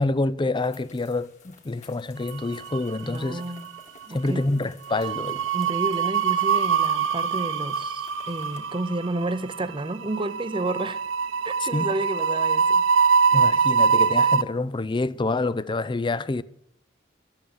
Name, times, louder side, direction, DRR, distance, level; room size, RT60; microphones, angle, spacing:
voice 1, 0.0-3.4 4.1-5.5 11.6-11.9 13.3-16.4, left 2 dB, 25° left, 0.5 m, -27 dB
sound 1, 0.5-8.6, left 4 dB, 40° left, 2.4 m, -53 dB
sound 2, 2.4-3.2 3.4-3.7 4.9-14.4, right 6 dB, 75° right, 0.6 m, -23 dB
voice 2, 3.0-3.7 4.1-4.5 5.5-11.0 11.4-12.8, right 2 dB, 25° right, 0.7 m, -31 dB
12.5 x 8.8 x 8.8 m
head